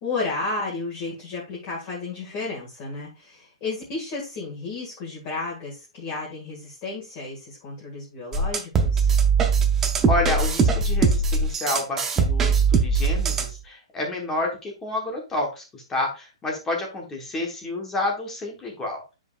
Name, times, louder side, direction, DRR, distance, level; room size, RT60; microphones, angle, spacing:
voice 1, 0.0-9.1, left 3 dB, 25° left, -5 dB, 1.9 m, -32 dB
sound 1, 8.3-13.6, right 5 dB, 10° right, 0.5 m, -21 dB
voice 2, 10.1-19.0, left 2 dB, 10° left, 0 dB, 1.2 m, -29 dB
9.2 x 5.1 x 2.4 m, 0.29 s
hypercardioid pair, 170°, 3 cm